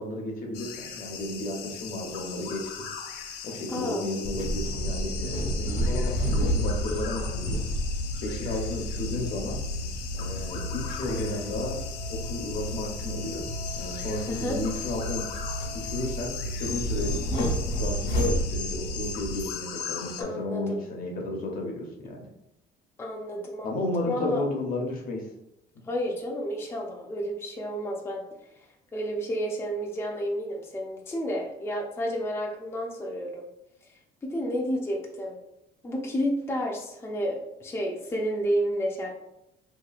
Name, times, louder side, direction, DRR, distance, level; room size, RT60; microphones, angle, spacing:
voice 1, 0.0-2.9 3.4-7.6 8.2-9.6 10.2-11.8 12.1-13.4 13.8-15.2 15.7-17.2 17.8-22.3 23.6-25.3, left 2 dB, 55° left, 1 dB, 0.7 m, -33 dB
sound 1, 0.5-20.2, left 7 dB, 90° left, 0.4 m, -39 dB
voice 2, 3.7-4.1 14.3-14.6 20.2-20.8 23.0-24.4 25.9-28.2 28.9-33.5 34.2-35.4 35.8-39.2, equal, 15° left, -1 dB, 0.4 m, -31 dB
sound 2, 4.2-19.4, equal, 75° left, 1.1 m, -31 dB
2.8 x 2.7 x 2.4 m, 0.85 s
cardioid pair, 110°, 17 cm